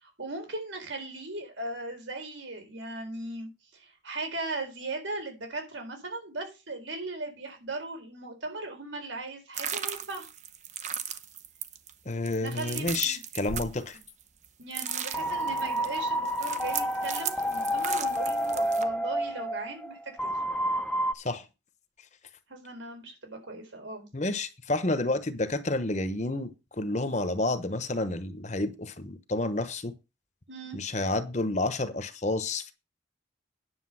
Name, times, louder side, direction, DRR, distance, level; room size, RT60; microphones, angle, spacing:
voice 1, 0.0-10.3 12.3-13.2 14.6-20.3 22.5-24.1 30.5-30.8, right 2 dB, 75° right, 4.0 m, -38 dB
sound 1, 9.5-14.4 14.7-18.8, right 8 dB, 35° right, 0.8 m, -36 dB
voice 2, 12.0-14.0 21.1-21.4 24.1-29.9 30.7-32.7, left 2 dB, 35° left, 1.1 m, -30 dB
sound 2, 14.9-21.1, equal, 5° left, 0.7 m, -29 dB
9.9 x 6.9 x 5.7 m
head